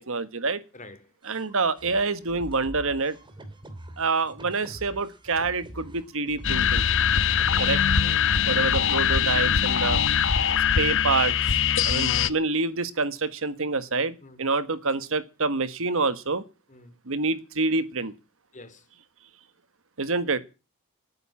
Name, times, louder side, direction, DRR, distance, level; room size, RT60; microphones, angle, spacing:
voice 1, 0.1-0.6 1.3-3.2 4.0-6.8 7.6-7.8 8.5-10.0 10.8-16.4 17.1-18.1 20.0-20.4, right 3 dB, 65° right, 1.4 m, -27 dB
voice 2, 0.7-1.1 7.5-7.8 8.0-8.4 14.2-14.4 16.7-17.0 18.5-18.9, left 2 dB, 35° left, 2.5 m, -46 dB
sound 1, 1.2-8.2, right 1 dB, 20° right, 2.7 m, -44 dB
sound 2, 6.4-12.3, left 8 dB, 60° left, 0.9 m, -22 dB
19.0 x 9.4 x 7.2 m
head